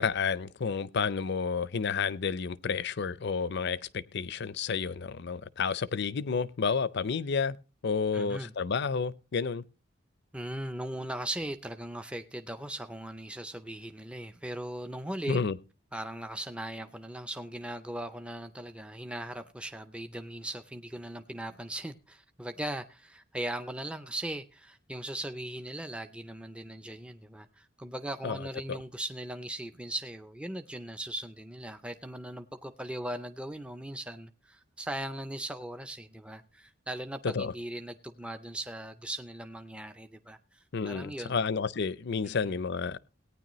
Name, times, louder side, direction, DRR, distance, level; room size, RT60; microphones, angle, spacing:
voice 1, 0.0-7.6 7.8-9.6 15.3-15.5 28.2-28.4 28.7-28.8 37.2-37.5 40.7-43.0, left 5 dB, 60° left, 0.6 m, -30 dB
voice 2, 8.1-8.5 10.3-15.4 15.9-41.4 42.2-42.6, right 1 dB, 5° right, 0.5 m, -39 dB
17.5 x 9.6 x 3.1 m
head